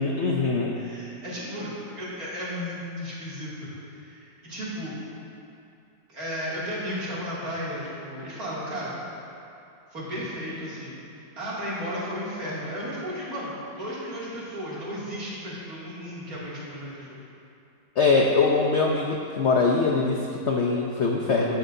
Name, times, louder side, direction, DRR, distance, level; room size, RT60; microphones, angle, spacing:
voice 1, 0.0-0.8 18.0-21.6, left 4 dB, 70° left, 0 dB, 0.6 m, -23 dB
voice 2, 0.7-4.9 6.1-9.0 9.9-10.9 11.4-17.2, equal, 50° right, -8 dB, 3.0 m, -34 dB
15.0 x 9.2 x 2.7 m, 2.6 s
omnidirectional pair, 2.0 m